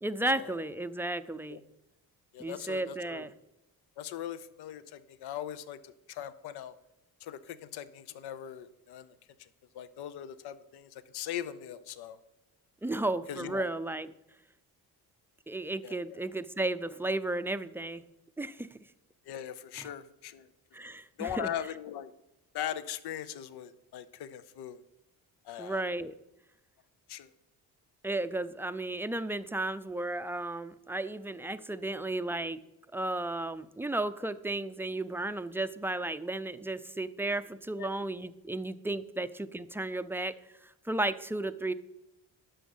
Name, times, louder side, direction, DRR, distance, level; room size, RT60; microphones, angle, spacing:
voice 1, 0.0-1.6 2.4-3.3 12.8-14.1 15.5-18.0 18.4-18.8 19.8-19.9 20.7-21.5 25.6-26.1 28.0-32.6 32.9-40.3 40.9-41.7, right 2 dB, 5° right, 12 dB, 0.5 m, -34 dB
voice 2, 2.3-3.3 4.0-6.8 7.2-9.1 9.4-9.5 9.7-12.2 12.9-13.0 13.3-13.7 15.8-16.2 19.3-20.5 21.2-22.1 22.5-24.8 25.4-25.8 27.1-27.3 37.8-37.9, left 10 dB, 75° left, 15 dB, 0.8 m, -40 dB
11.5 x 7.0 x 5.5 m, 0.93 s
cardioid pair, 90°, 39 cm